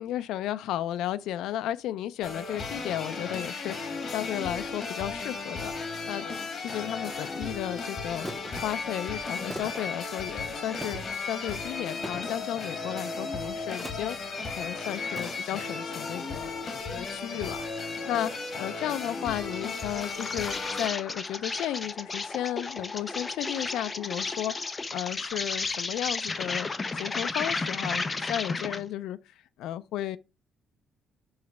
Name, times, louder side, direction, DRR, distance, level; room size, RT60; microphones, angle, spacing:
voice 1, 0.0-26.7 26.9-30.2, left 12 dB, 90° left, 0.4 m, -34 dB
sound 1, 2.2-20.9, left 4 dB, 50° left, 1.5 m, -35 dB
sound 2, 7.1-7.3 8.2-8.6 9.5-9.9 10.8-11.2 12.0-12.5 13.8-14.2 15.2-15.7 16.7-16.8, right 1 dB, 15° right, 0.7 m, -41 dB
Insect, 19.5-28.9, left 3 dB, 30° left, 0.6 m, -33 dB
5.8 x 3.1 x 5.8 m
cardioid pair, 90°, 0 cm